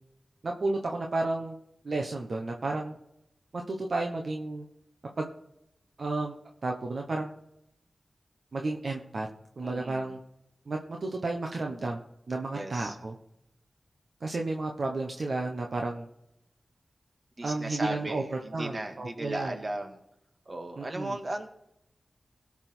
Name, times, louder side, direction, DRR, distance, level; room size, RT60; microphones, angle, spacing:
voice 1, 0.4-1.6 1.8-2.9 3.5-4.7 5.2-5.3 6.0-6.3 6.6-7.3 8.5-9.3 9.6-10.2 10.7-12.0 12.3-13.1 14.2-16.1 17.4-18.2 18.5-19.5 20.8-21.2, right 2 dB, 70° right, 2 dB, 1.1 m, -32 dB
voice 2, 9.6-10.1 12.5-13.0 17.4-20.0 20.5-21.5, right 1 dB, 50° right, 4 dB, 2.0 m, -36 dB
17.5 x 6.1 x 4.5 m, 0.79 s
cardioid pair, 45°, 0 cm